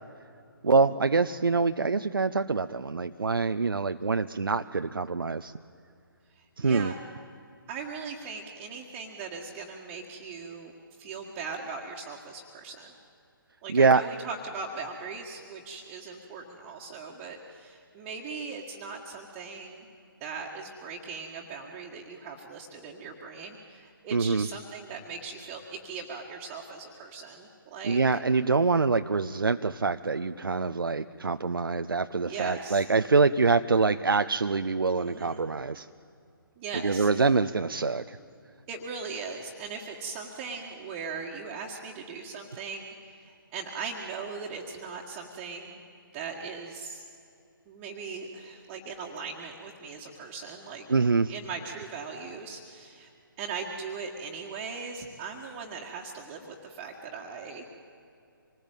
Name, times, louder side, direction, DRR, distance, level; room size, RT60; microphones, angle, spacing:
voice 1, 0.6-5.5 6.6-6.9 13.7-14.0 24.1-24.5 27.8-35.9 36.8-38.2 50.9-51.3, right 4 dB, 70° right, 9 dB, 0.6 m, -25 dB
voice 2, 6.3-7.0 7.7-10.7 11.0-12.9 13.6-19.9 20.2-28.0 32.2-32.8 35.0-35.4 36.6-37.1 38.7-45.8 46.1-47.0 47.7-50.9 51.3-53.1 53.4-57.6, right 5 dB, 20° right, -1 dB, 1.8 m, -39 dB
26.0 x 20.0 x 9.0 m, 2.6 s
figure-of-eight pair, 135°, 12 cm